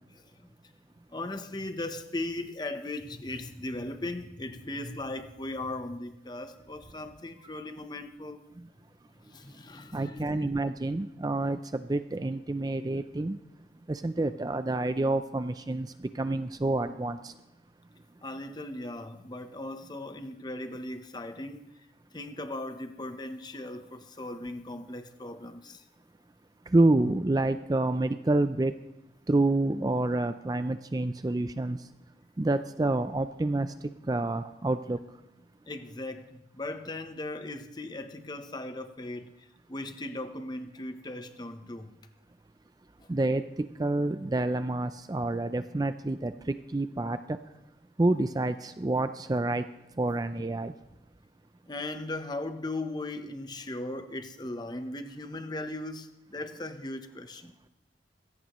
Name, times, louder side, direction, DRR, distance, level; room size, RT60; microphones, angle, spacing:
voice 1, 1.1-8.4 9.2-10.5 18.2-21.7 22.1-25.8 35.7-39.4 39.7-41.9 51.7-57.5, left 2 dB, 25° left, 0.9 m, -38 dB
voice 2, 9.9-13.4 13.9-17.3 26.7-28.7 29.3-31.8 32.4-33.7 34.1-35.0 43.1-47.4 48.0-49.7 50.0-50.7, right 2 dB, 20° right, 0.4 m, -28 dB
22.5 x 17.0 x 3.1 m
head